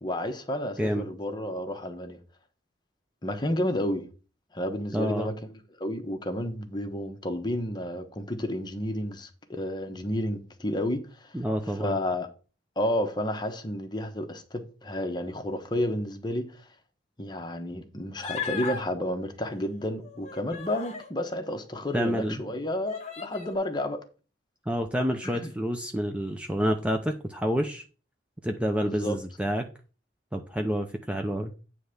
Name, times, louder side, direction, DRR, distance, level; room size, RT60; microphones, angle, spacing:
voice 1, 0.0-2.2 3.2-4.1 4.5-5.5 5.8-11.3 11.8-12.3 12.8-16.6 17.2-24.0 25.2-25.5 28.8-29.2, left 1 dB, 25° left, 1.1 m, -31 dB
voice 2, 4.9-5.3 11.3-12.0 21.9-22.4 24.7-27.8 28.4-29.7 30.3-31.5, equal, 5° right, 0.6 m, -28 dB
Human voice, 18.2-18.8 20.0-21.1 21.9-22.0 22.9-23.6, left 6 dB, 40° left, 1.4 m, -36 dB
9.3 x 3.4 x 6.5 m
head